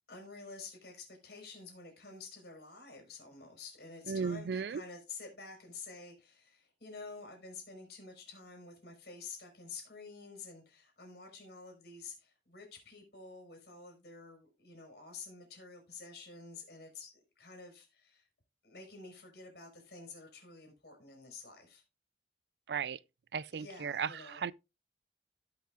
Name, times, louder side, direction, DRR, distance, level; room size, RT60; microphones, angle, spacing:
voice 1, 0.1-18.3 18.6-21.8 23.5-24.4, left 4 dB, 65° left, 4.5 m, -50 dB
voice 2, 4.1-4.8 22.7-23.0 23.3-24.5, right 6 dB, 65° right, 0.4 m, -35 dB
17.5 x 5.8 x 2.4 m
head